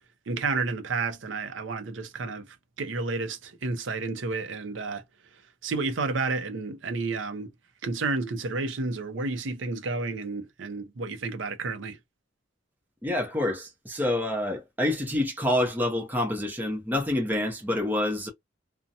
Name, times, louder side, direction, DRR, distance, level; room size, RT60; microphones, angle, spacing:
voice 1, 0.3-5.0 5.6-7.5 7.8-12.0, right 3 dB, 75° right, 0.6 m, -31 dB
voice 2, 13.0-18.3, left 1 dB, 10° right, 0.7 m, -27 dB
2.5 x 2.1 x 2.7 m
head